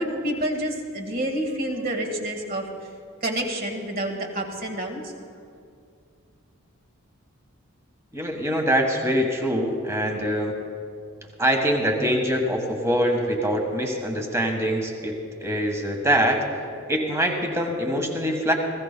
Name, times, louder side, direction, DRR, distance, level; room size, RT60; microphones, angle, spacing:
voice 1, 0.0-2.6 3.2-5.0, right 1 dB, 45° right, 2 dB, 1.7 m, -28 dB
voice 2, 8.1-10.5 11.4-16.4 16.9-18.5, equal, 15° right, 3 dB, 1.4 m, -24 dB
20.0 x 15.5 x 2.2 m, 2.4 s
head